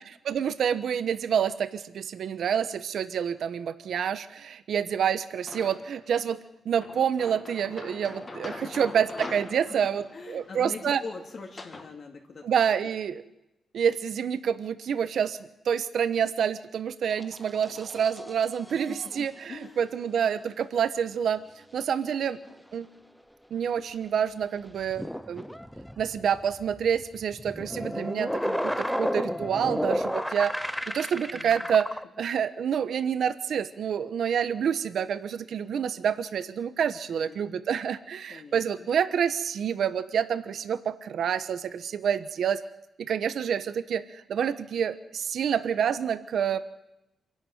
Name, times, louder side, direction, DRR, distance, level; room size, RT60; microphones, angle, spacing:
voice 1, 0.0-6.4 6.6-11.0 12.4-13.2 13.7-15.4 15.6-21.4 21.7-22.4 22.7-22.9 23.5-25.5 26.0-31.9 32.2-42.6 43.0-46.6, right 8 dB, 65° right, 12 dB, 1.1 m, -28 dB
sound 1, 5.5-6.1 6.8-11.9, left 2 dB, 25° left, 2.1 m, -42 dB
voice 2, 10.1-12.5 18.7-19.8 22.4-22.5 31.3-31.7 37.1-37.4 38.3-38.9, left 4 dB, 45° left, 1 dB, 2.4 m, -43 dB
sound 2, 17.1-19.3 23.6-23.7 24.7-32.0, equal, ahead, 0.8 m, -33 dB
27.0 x 11.5 x 9.3 m, 0.89 s
wide cardioid pair, 160°, 0 cm